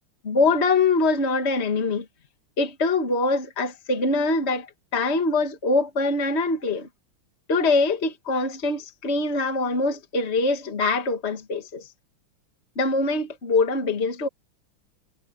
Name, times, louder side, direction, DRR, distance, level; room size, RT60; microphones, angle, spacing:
voice 1, 0.2-2.1 2.6-6.9 7.5-11.9 12.8-14.3, left 3 dB, 35° left, 2.0 m, -23 dB
omnidirectional pair, 2.3 m